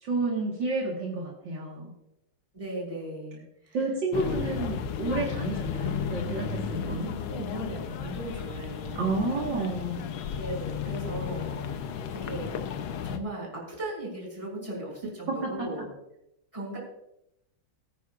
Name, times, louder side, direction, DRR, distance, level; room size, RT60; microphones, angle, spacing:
voice 1, 0.0-1.9 3.7-7.1 9.0-10.1, right 3 dB, 65° right, -3 dB, 2.4 m, -30 dB
voice 2, 2.5-3.8 6.8-7.0 7.3-9.3 10.3-11.6 12.1-12.5 13.0-15.9 16.5-16.8, right 1 dB, 15° right, -4 dB, 4.8 m, -37 dB
sound 1, 4.1-13.2, left 7 dB, 90° left, 1.7 m, -33 dB
20.5 x 9.4 x 2.5 m, 0.81 s
omnidirectional pair, 2.2 m